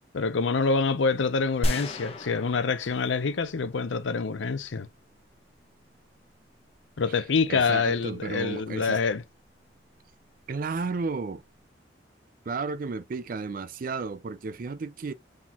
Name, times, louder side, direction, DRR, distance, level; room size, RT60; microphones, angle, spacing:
voice 1, 0.1-4.9 7.0-9.2, left 4 dB, 85° left, 0.6 m, -26 dB
sound 1, 1.6-4.0, left 1 dB, 30° left, 0.9 m, -33 dB
voice 2, 7.5-9.0 10.5-11.4 12.5-15.1, right 4 dB, 45° right, 0.4 m, -33 dB
4.1 x 3.8 x 2.9 m
head